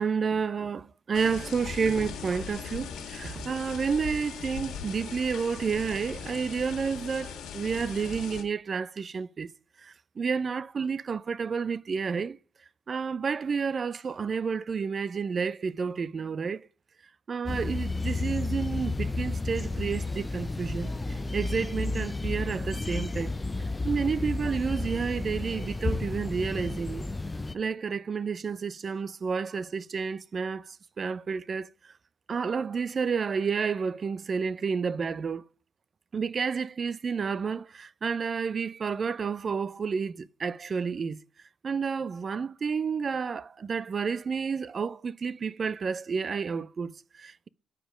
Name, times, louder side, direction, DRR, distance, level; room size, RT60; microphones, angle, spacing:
voice 1, 0.0-9.5 9.8-12.4 12.9-16.7 17.3-23.3 23.8-27.0 27.5-31.9 32.3-35.5 36.1-41.2 41.6-47.5, right 5 dB, 40° right, 0.4 m, -30 dB
sound 1, 1.1-8.4, left 6 dB, 85° left, 2.0 m, -39 dB
sound 2, 17.5-27.5, left 3 dB, 20° left, 0.5 m, -32 dB
9.3 x 5.1 x 4.9 m
cardioid pair, 90°, 0 cm